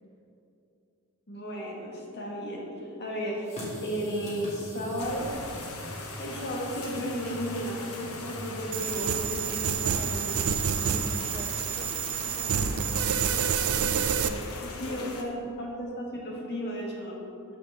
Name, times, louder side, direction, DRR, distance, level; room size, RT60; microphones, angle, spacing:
voice 1, 1.3-5.3 6.2-10.4 14.6-17.2, equal, 50° left, -3 dB, 1.9 m, -34 dB
sound 1, 3.5-11.3, left 1 dB, 30° left, 2.2 m, -43 dB
sound 2, 5.0-15.2, left 3 dB, 75° left, 1.0 m, -41 dB
sound 3, 8.7-14.3, right 7 dB, 70° right, 0.5 m, -28 dB
voice 2, 10.7-13.8 14.1-15.3, equal, 20° right, -1 dB, 1.0 m, -45 dB
13.5 x 6.1 x 3.6 m, 2.7 s
head